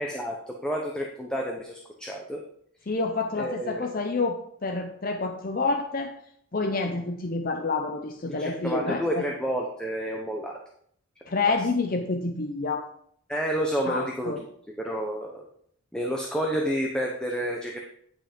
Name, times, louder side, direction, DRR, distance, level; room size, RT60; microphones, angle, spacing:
voice 1, 0.0-2.4 3.4-3.9 8.4-10.6 13.3-14.3 14.8-15.4 15.9-17.8, equal, 5° left, 0 dB, 0.8 m, -30 dB
voice 2, 2.9-6.2 6.5-9.2 11.3-12.9 13.9-14.4, left 3 dB, 40° left, 5 dB, 0.6 m, -28 dB
9.6 x 5.7 x 5.1 m, 0.66 s
head